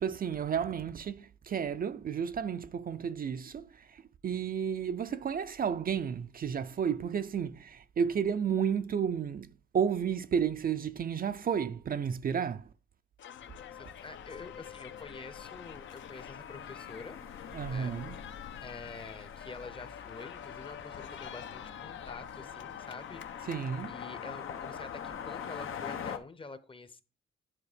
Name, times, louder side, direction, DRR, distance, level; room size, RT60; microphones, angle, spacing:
voice 1, 0.0-12.7 17.5-18.2 23.5-23.9, right 7 dB, 45° right, 0.4 m, -32 dB
sound 1, 13.2-23.9, left 9 dB, 65° left, 0.6 m, -49 dB
sound 2, 13.3-26.2, left 7 dB, 85° left, 1.0 m, -44 dB
voice 2, 13.7-17.2 17.7-17.9 18.6-23.5 23.9-27.0, left 3 dB, 25° left, 0.7 m, -47 dB
9.8 x 4.2 x 5.0 m
wide cardioid pair, 135°, 21 cm